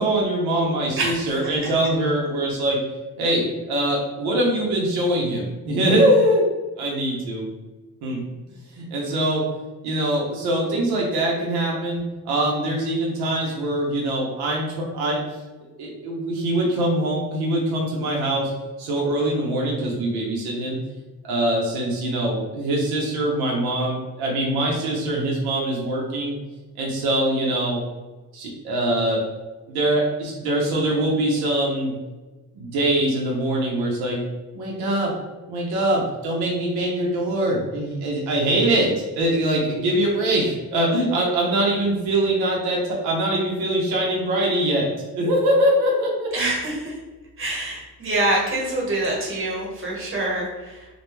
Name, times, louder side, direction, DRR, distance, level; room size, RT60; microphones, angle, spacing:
voice 1, 0.0-2.8 3.2-6.5 6.8-7.5 8.0-8.2 8.8-9.5 9.8-15.2 15.8-18.5 18.8-20.8 21.2-26.4 26.8-27.8 28.3-29.2 29.7-31.9 32.5-34.2 34.5-35.1 35.5-44.9 45.1-46.3, right 1 dB, 85° right, -2 dB, 0.7 m, -23 dB
voice 2, 46.3-46.9 47.4-50.9, right 2 dB, 35° right, -3 dB, 1.1 m, -25 dB
2.2 x 2.1 x 3.0 m, 1.2 s
cardioid pair, 85°, 37 cm